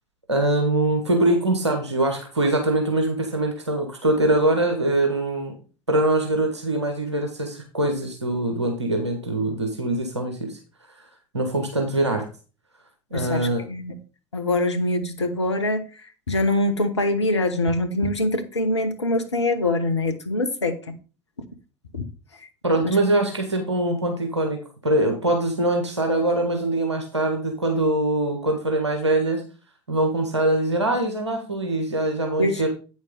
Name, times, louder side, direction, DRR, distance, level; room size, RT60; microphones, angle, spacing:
voice 1, 0.3-5.5 5.9-10.5 11.3-12.2 13.1-13.6 22.6-24.6 24.8-29.4 29.9-32.7, right 1 dB, 90° right, 1.6 m, -23 dB
voice 2, 13.1-13.9 14.3-15.8 16.3-20.8 21.9-22.0 22.8-22.9 32.4-32.6, left 2 dB, 90° left, 1.0 m, -24 dB
8.9 x 6.3 x 3.9 m
figure-of-eight pair, 70°, 14 cm